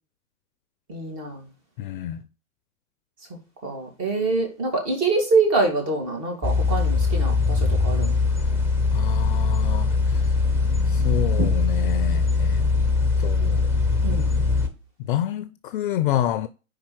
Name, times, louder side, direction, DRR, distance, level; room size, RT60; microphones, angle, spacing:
voice 1, 0.9-1.5 3.6-8.1 14.0-14.4, right 3 dB, 40° right, 2.9 m, -25 dB
voice 2, 1.8-2.2 8.9-10.3 10.9-12.7 13.2-13.7 15.0-16.5, left 11 dB, 40° left, 0.4 m, -28 dB
sound 1, 6.4-14.7, left 4 dB, 5° right, 0.7 m, -21 dB
5.1 x 4.3 x 6.0 m
hypercardioid pair, 120°, 41 cm